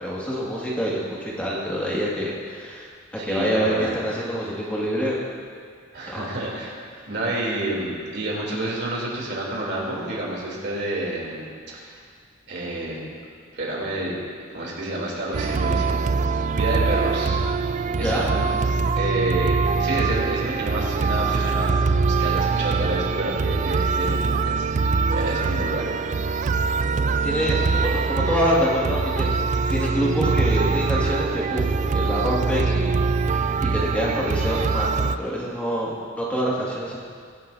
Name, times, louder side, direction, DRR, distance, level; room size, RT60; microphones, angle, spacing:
voice 1, 0.0-5.2 6.1-6.2 17.9-18.2 27.2-31.6 31.9-32.9 33.2-37.0, equal, 5° left, -6 dB, 2.1 m, -26 dB
voice 2, 3.2-3.9 5.9-6.8 7.1-11.5 11.7-12.0 12.5-13.0 13.5-14.2 14.5-16.0 16.5-17.4 18.0-18.5 19.0-26.0, right 1 dB, 55° right, -4 dB, 3.2 m, -29 dB
sound 1, 15.3-35.2, right 4 dB, 35° right, 0.3 m, -23 dB
22.5 x 11.0 x 2.7 m, 2.1 s
head